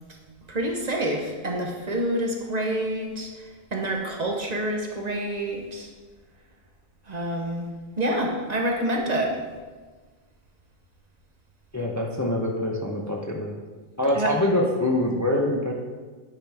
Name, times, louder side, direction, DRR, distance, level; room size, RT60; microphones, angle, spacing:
voice 1, 0.5-3.4 3.7-5.9 7.1-7.7 8.0-9.3 14.1-14.3, right 1 dB, 45° right, 1 dB, 0.9 m, -27 dB
voice 2, 11.7-13.6 14.0-15.7, left 1 dB, 20° left, 0 dB, 0.5 m, -24 dB
9.0 x 4.9 x 3.5 m, 1.4 s
omnidirectional pair, 1.1 m